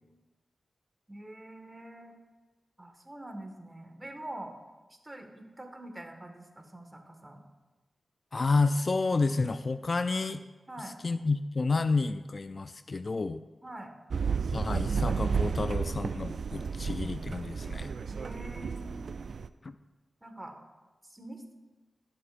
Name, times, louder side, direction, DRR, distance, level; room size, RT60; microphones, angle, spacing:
voice 1, 1.1-2.2 2.8-4.6 5.0-7.4 10.7-11.0 13.6-13.9 18.1-19.1 20.2-20.6 21.0-21.5, right 1 dB, 20° right, 4 dB, 1.7 m, -45 dB
voice 2, 8.3-10.4 11.0-13.4 14.5-17.9 19.6-19.7, left 3 dB, 50° left, 11 dB, 0.4 m, -30 dB
sound 1, 14.1-19.5, right 5 dB, 75° right, 0.3 m, -32 dB
18.5 x 6.8 x 2.6 m, 1.2 s
cardioid pair, 40°, 0 cm